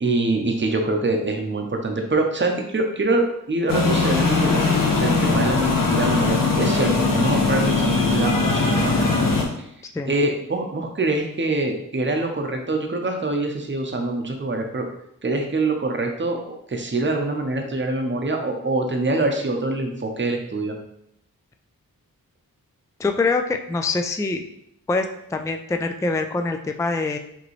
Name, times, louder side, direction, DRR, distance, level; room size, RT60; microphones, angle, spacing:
voice 1, 0.0-9.0 10.1-14.9 15.2-16.4 16.7-20.7, right 2 dB, 30° right, 3 dB, 0.8 m, -24 dB
sound 1, 3.7-9.4, left 3 dB, 60° left, 0.9 m, -20 dB
voice 2, 23.0-24.4 24.9-27.2, left 3 dB, 10° left, 6 dB, 0.3 m, -24 dB
5.0 x 3.0 x 3.2 m, 0.76 s
wide cardioid pair, 40°, 36 cm